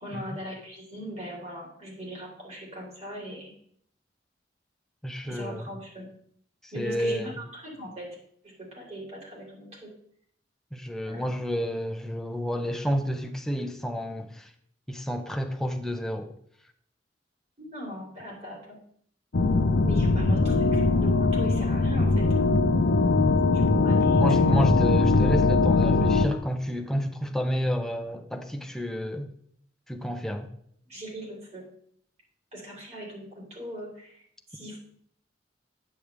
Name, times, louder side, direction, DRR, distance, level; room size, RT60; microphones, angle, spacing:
voice 1, 0.0-3.5 5.2-6.1 6.7-8.1 8.4-9.9 11.1-11.2 17.6-18.8 19.8-22.2 23.7-24.7 30.9-31.7 32.5-34.2 34.5-34.8, equal, 40° right, 3.6 m, -40 dB
voice 2, 5.0-5.7 6.6-7.4 10.7-14.5 14.9-16.3 24.1-29.3 29.9-30.5, equal, 5° left, 0.7 m, -30 dB
sound 1, 19.3-26.3, left 3 dB, 70° left, 0.7 m, -21 dB
9.3 x 8.5 x 3.4 m
head